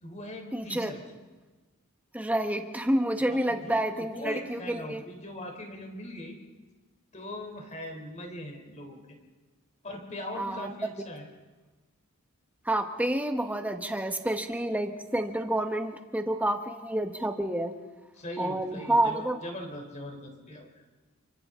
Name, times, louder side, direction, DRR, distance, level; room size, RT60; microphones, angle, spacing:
voice 1, 0.0-1.0 3.3-6.4 7.1-9.2 9.8-11.3 18.2-20.8, left 1 dB, 35° left, 3 dB, 3.5 m, -40 dB
voice 2, 0.5-0.9 2.1-5.0 10.4-10.7 12.6-17.7 18.4-19.4, right 1 dB, 5° right, 6 dB, 1.2 m, -29 dB
30.0 x 24.5 x 3.8 m, 1.2 s
head